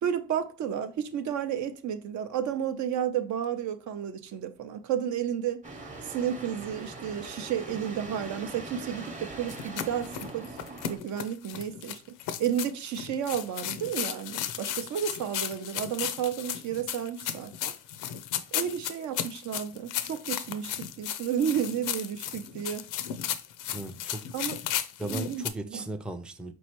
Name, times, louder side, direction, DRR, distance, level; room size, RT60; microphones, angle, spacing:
voice 1, 0.0-5.7 6.0-10.5 10.9-12.0 12.4-17.7 18.5-22.9 24.3-24.6 25.0-25.9, right 9 dB, 70° right, 0.6 m, -32 dB
sound 1, 5.6-11.0, right 2 dB, 25° right, 0.9 m, -42 dB
sound 2, 9.5-25.5, left 10 dB, 90° left, 0.5 m, -35 dB
voice 2, 23.7-24.2 25.0-26.5, right 1 dB, 5° right, 0.4 m, -36 dB
4.5 x 3.1 x 2.9 m
cardioid pair, 90°, 30 cm